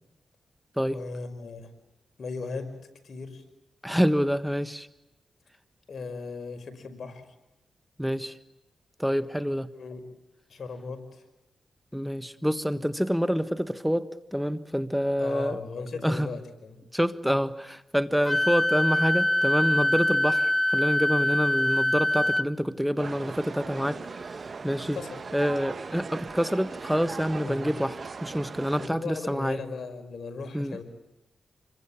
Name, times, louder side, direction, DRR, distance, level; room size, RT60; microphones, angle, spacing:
voice 1, 0.9-1.7 2.2-2.7 3.0-3.4 5.9-7.3 9.7-10.0 10.5-11.2 15.2-16.8 24.6-25.2 27.4-27.7 28.8-30.8, left 4 dB, 65° left, 8 dB, 5.2 m, -37 dB
voice 2, 3.8-4.9 8.0-8.4 9.0-9.7 11.9-15.6 16.0-16.3 16.9-25.0 25.3-29.6 30.5-30.8, equal, ahead, 13 dB, 1.4 m, -27 dB
Wind instrument woodwind instrument, 18.2-22.5, left 1 dB, 20° left, 1.1 m, -24 dB
sound 1, 23.0-28.9, right 4 dB, 55° right, 1.7 m, -39 dB
28.0 x 23.0 x 8.7 m, 0.93 s
cardioid pair, 50°, 0 cm